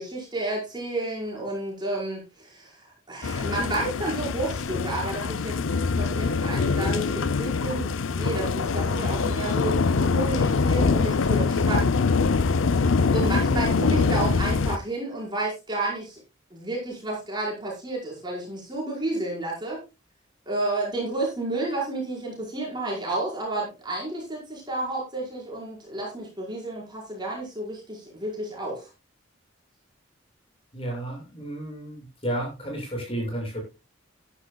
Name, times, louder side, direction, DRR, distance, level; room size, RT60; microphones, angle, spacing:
voice 1, 0.0-5.6 6.0-12.0 13.1-16.2 16.5-19.8 20.5-28.9, right 2 dB, 20° right, -3 dB, 5.0 m, -31 dB
sound 1, 3.2-14.8, left 4 dB, 75° left, 0.6 m, -24 dB
voice 2, 30.7-33.6, right 1 dB, 25° left, -1 dB, 6.9 m, -32 dB
15.0 x 11.5 x 2.3 m, 0.27 s
head